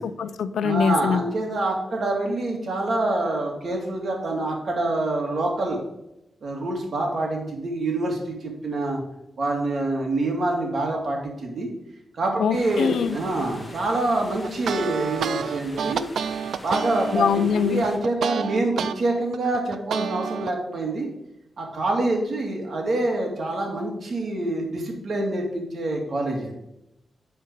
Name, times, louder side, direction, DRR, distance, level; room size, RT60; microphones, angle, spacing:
voice 1, 0.0-1.2 12.4-13.2 17.1-17.8, left 7 dB, 90° left, 13 dB, 0.5 m, -23 dB
voice 2, 0.6-5.8 6.4-9.0 9.4-11.7 12.1-16.0 16.6-21.1 21.6-26.5, right 2 dB, 60° right, 0 dB, 2.3 m, -26 dB
sound 1, 12.5-18.0, left 1 dB, 20° left, 1.7 m, -43 dB
sound 2, 14.4-18.9 19.3-20.5, right 7 dB, 85° right, 0.4 m, -29 dB
10.5 x 4.4 x 5.2 m, 0.87 s
cardioid pair, 95°, 0 cm